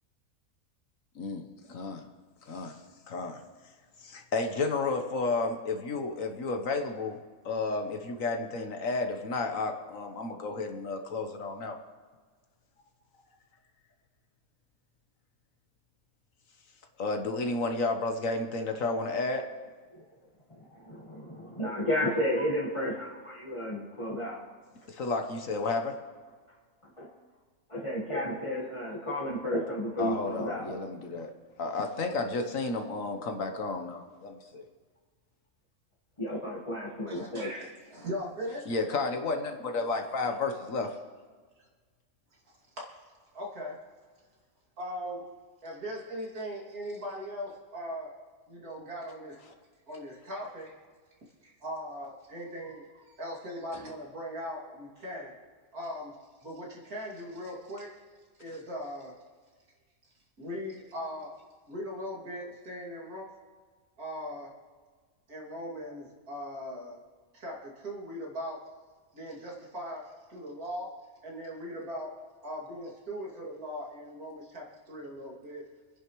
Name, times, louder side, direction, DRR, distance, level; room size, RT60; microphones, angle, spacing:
voice 1, 1.1-2.1 2.4-2.8 3.1-3.4 4.0-7.2 7.4-11.8 17.0-19.5 24.9-26.0 30.0-31.3 31.6-34.6 38.7-40.9, left 3 dB, 65° left, 5 dB, 1.4 m, -32 dB
voice 2, 20.5-24.4 26.8-27.1 27.7-30.8 36.2-37.5, left 1 dB, 20° left, -5 dB, 1.6 m, -32 dB
voice 3, 37.1-38.7 42.5-42.9 43.3-43.8 44.8-45.3 45.6-48.1 48.5-49.4 49.9-50.7 51.4-55.3 55.7-56.2 56.4-57.9 58.4-59.1 60.4-61.4 61.7-63.3 64.0-64.5 65.3-67.0 67.3-68.6 69.1-70.9 71.2-72.1 72.4-75.6, equal, 85° right, -3 dB, 3.0 m, -39 dB
26.0 x 10.5 x 3.1 m, 1.5 s
omnidirectional pair, 1.5 m